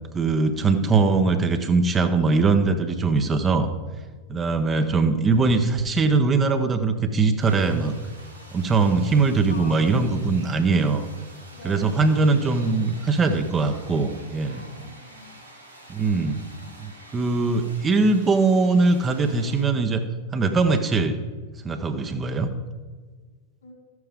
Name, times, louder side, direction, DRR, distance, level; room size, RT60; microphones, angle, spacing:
voice 1, 0.1-3.7 4.3-7.9 8.5-11.1 11.6-14.6 15.9-16.4 16.8-20.0 20.3-21.2 21.6-22.5, right 3 dB, 20° right, 7 dB, 0.9 m, -21 dB
sound 1, 7.4-19.6, right 1 dB, 90° right, 2.0 m, -47 dB
voice 2, 9.5-9.8 11.5-12.7 14.4-15.2 16.5-16.9 23.6-23.7, left 2 dB, 70° left, 0 dB, 3.4 m, -45 dB
13.5 x 9.4 x 3.7 m, 1.5 s
figure-of-eight pair, 90°, 0 cm